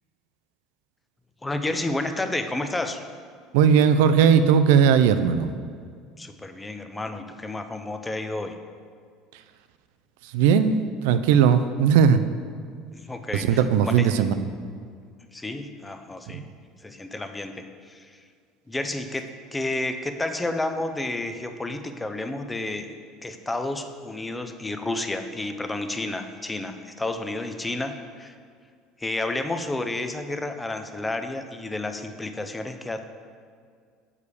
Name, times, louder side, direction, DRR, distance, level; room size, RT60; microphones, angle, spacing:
voice 1, 1.4-3.0 6.2-8.6 12.9-14.1 15.3-16.5 16.8-18.2 18.7-22.9 23.2-28.3 29.0-33.0, left 2 dB, 10° left, 7 dB, 0.4 m, -31 dB
voice 2, 3.5-5.5 10.3-12.2 13.3-14.4 16.3-16.4, right 7 dB, 85° right, 10 dB, 0.4 m, -18 dB
6.9 x 4.8 x 4.8 m, 2.1 s
cardioid pair, 145°, 0 cm